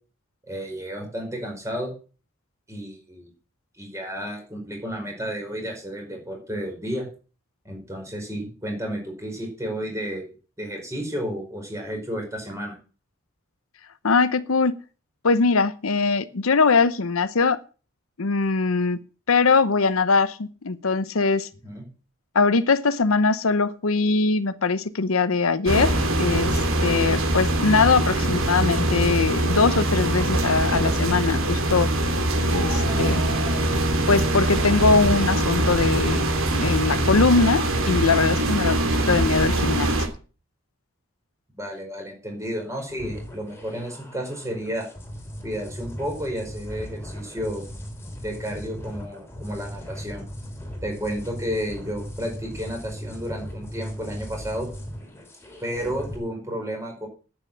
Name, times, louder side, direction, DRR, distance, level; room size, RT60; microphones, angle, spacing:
voice 1, 0.5-1.9 2.7-3.3 3.8-7.1 7.6-10.3 10.6-12.7 21.6-21.8 41.6-44.9 45.4-47.6 48.2-50.2 50.8-54.7 55.6-57.1, equal, 15° right, 1 dB, 5.0 m, -32 dB
voice 2, 14.0-14.8 15.2-17.6 18.2-19.0 19.3-21.5 22.3-25.9 26.2-31.9 32.5-33.2 34.1-36.2 36.5-38.8 39.1-39.9, left 4 dB, 80° left, 14 dB, 0.8 m, -21 dB
sound 1, 25.7-40.1, right 1 dB, 75° right, 2.7 m, -23 dB
Owl scream, 32.5-33.6, right 1 dB, 50° right, 3.5 m, -34 dB
sound 2, 42.9-56.2, equal, 10° left, 3.3 m, -38 dB
10.0 x 8.9 x 7.4 m, 0.36 s
head